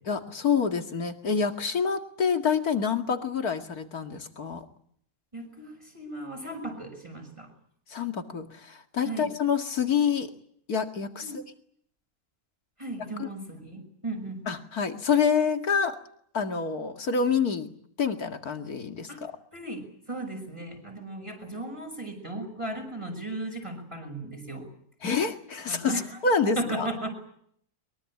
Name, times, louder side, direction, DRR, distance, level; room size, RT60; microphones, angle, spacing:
voice 1, 0.1-4.6 7.9-10.3 10.7-11.4 14.5-16.0 16.3-17.7 18.0-19.3 25.0-25.9 26.2-26.9, left 6 dB, 85° left, 6 dB, 2.6 m, -27 dB
voice 2, 5.3-7.5 9.0-9.3 11.2-11.4 12.8-14.4 19.1-19.2 19.5-24.7 25.7-26.2 26.6-27.1, right 2 dB, 20° right, 2 dB, 6.1 m, -36 dB
23.0 x 23.0 x 8.6 m, 0.65 s
omnidirectional pair, 1.6 m